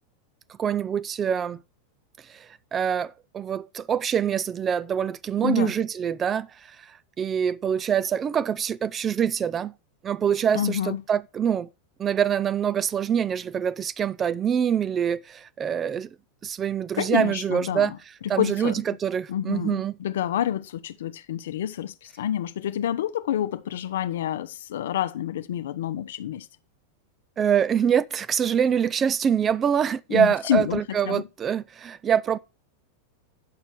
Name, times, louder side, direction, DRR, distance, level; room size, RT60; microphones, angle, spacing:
voice 1, 0.6-1.6 2.3-2.5 2.7-6.5 6.8-6.9 7.2-9.7 10.0-11.7 12.0-16.1 16.4-17.9 18.3-19.9 27.4-32.4, right 8 dB, 25° right, 0.5 m, -25 dB
voice 2, 10.5-11.0 17.0-18.0 18.4-19.0 19.3-26.5 30.1-31.3, left 10 dB, 60° left, 0.7 m, -28 dB
9.3 x 6.7 x 4.7 m
figure-of-eight pair, 90°, 0 cm